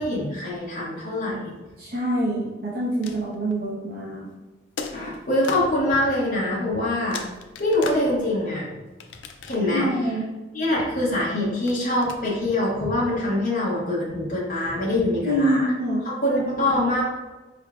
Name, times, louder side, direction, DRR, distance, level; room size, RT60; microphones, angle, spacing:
voice 1, 0.0-1.5 4.9-7.2 7.6-8.7 9.4-9.9 10.5-15.7 16.2-17.0, left 1 dB, 45° left, -7 dB, 1.1 m, -24 dB
voice 2, 1.8-4.3 9.7-10.3 15.2-16.1 16.3-16.4 16.7-16.8, right 1 dB, 50° right, -7 dB, 0.8 m, -25 dB
sound 1, 2.8-3.7 4.8-5.7 6.7-6.8 7.1-8.5 9.0-9.9 11.7-12.2, left 4 dB, 75° left, 0.4 m, -36 dB
4.6 x 3.6 x 2.4 m, 1.2 s
head